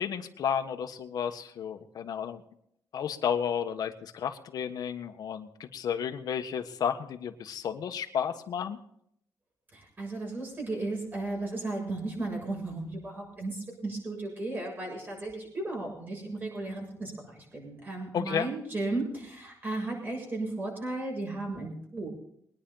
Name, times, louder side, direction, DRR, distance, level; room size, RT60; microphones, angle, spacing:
voice 1, 0.0-2.4 2.9-8.8 18.1-18.5, left 8 dB, 65° left, 5 dB, 1.4 m, -32 dB
voice 2, 9.7-22.1, right 2 dB, 30° right, -1 dB, 7.1 m, -35 dB
23.0 x 10.0 x 4.0 m, 0.71 s
cardioid pair, 135°, 7 cm